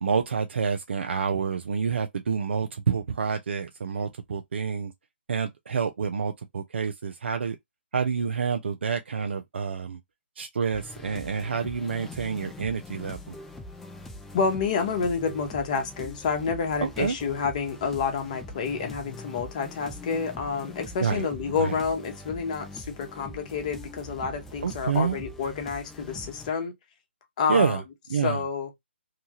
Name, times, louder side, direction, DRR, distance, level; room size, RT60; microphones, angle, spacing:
voice 1, 0.0-4.9 5.3-7.6 7.9-10.0 10.4-13.3 16.8-17.2 21.0-21.7 24.6-25.2 27.5-27.8 28.1-28.4, right 6 dB, 65° right, 0.5 m, -28 dB
sound 1, 10.7-26.5, left 1 dB, 5° left, 0.3 m, -43 dB
voice 2, 14.3-26.7 27.4-27.8 28.2-28.7, left 5 dB, 35° left, 0.9 m, -29 dB
2.9 x 2.3 x 2.8 m
figure-of-eight pair, 145°, 6 cm